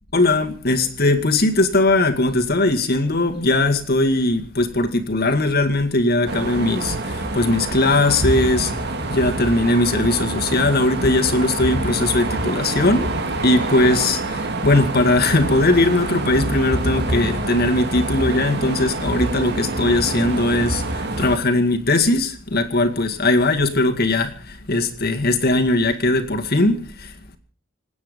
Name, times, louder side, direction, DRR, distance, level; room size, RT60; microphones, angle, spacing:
voice 1, 0.1-13.1 13.4-27.4, left 2 dB, 50° left, 2.2 m, -19 dB
sound 1, 6.3-21.4, right 2 dB, 55° right, 2.0 m, -26 dB
26.5 x 9.6 x 5.3 m
head